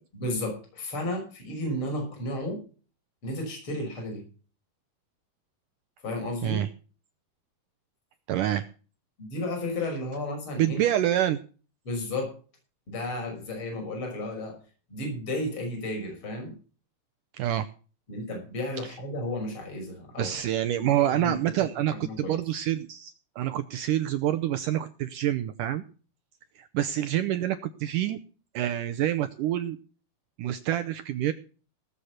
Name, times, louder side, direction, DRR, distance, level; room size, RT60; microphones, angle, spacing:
voice 1, 0.1-2.6 3.2-4.2 6.0-6.6 9.2-10.8 11.8-12.3 12.9-14.6 14.9-16.5 18.1-20.4 20.8-21.4 21.9-22.3, left 1 dB, 30° left, 2 dB, 6.6 m, -33 dB
voice 2, 8.3-8.7 10.6-11.4 17.3-17.7 18.8-18.9 20.2-25.8 26.6-28.2 28.5-29.8 30.4-31.3, right 12 dB, 80° right, 10 dB, 1.9 m, -27 dB
18.0 x 8.1 x 5.7 m, 0.38 s
omnidirectional pair, 4.6 m